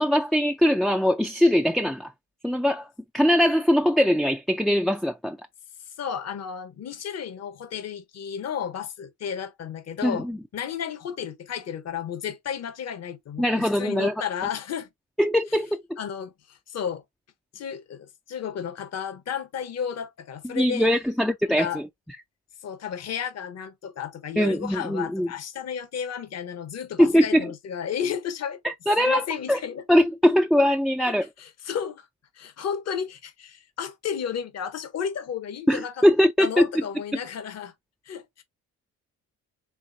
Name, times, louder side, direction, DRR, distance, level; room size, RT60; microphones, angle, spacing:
voice 1, 0.0-2.1 2.4-2.9 3.1-5.4 10.0-10.4 13.4-14.1 15.2-16.0 20.5-21.8 24.4-25.3 27.0-27.4 28.6-29.2 29.5-29.6 29.9-31.3 35.7-36.6, equal, ahead, 0.4 m, -21 dB
voice 2, 6.0-10.3 10.5-14.9 16.0-17.0 17.5-20.9 21.6-21.8 22.6-28.6 29.0-29.8 31.4-32.1 32.3-36.1 36.4-37.7 38.1-38.4, left 8 dB, 60° left, 1.1 m, -33 dB
4.7 x 3.2 x 2.7 m
cardioid pair, 90°, 30 cm